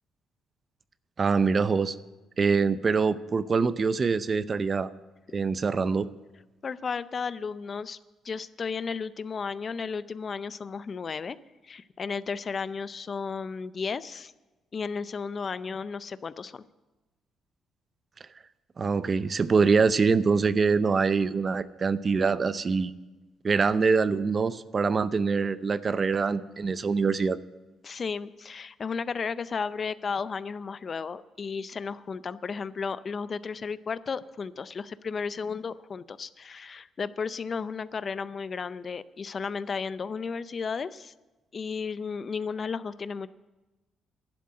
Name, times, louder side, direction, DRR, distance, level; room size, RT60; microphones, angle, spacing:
voice 1, 1.2-1.9 2.4-4.9 5.3-6.1 18.8-22.9 23.4-27.4, right 5 dB, 40° right, 16 dB, 0.5 m, -24 dB
voice 2, 6.6-8.0 8.2-11.4 11.6-14.3 14.7-16.6 27.8-41.1 41.5-43.3, left 5 dB, 40° left, 16 dB, 0.5 m, -34 dB
11.5 x 7.4 x 9.7 m, 1.1 s
cardioid pair, 90°, 0 cm